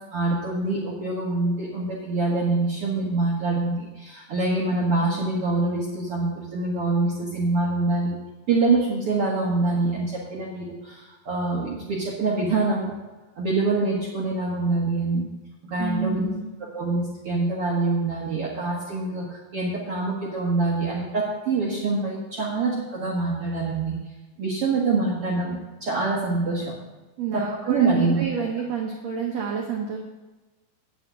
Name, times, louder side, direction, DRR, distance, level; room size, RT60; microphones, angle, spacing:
voice 1, 0.1-8.2 8.5-12.9 13.3-15.3 15.6-16.3 16.7-24.0 24.4-26.7 27.3-28.2, right 3 dB, 65° right, -4 dB, 1.4 m, -25 dB
voice 2, 15.8-16.5 27.2-30.0, right 5 dB, 85° right, 0 dB, 1.5 m, -28 dB
9.0 x 6.5 x 8.2 m, 1.2 s
omnidirectional pair, 4.9 m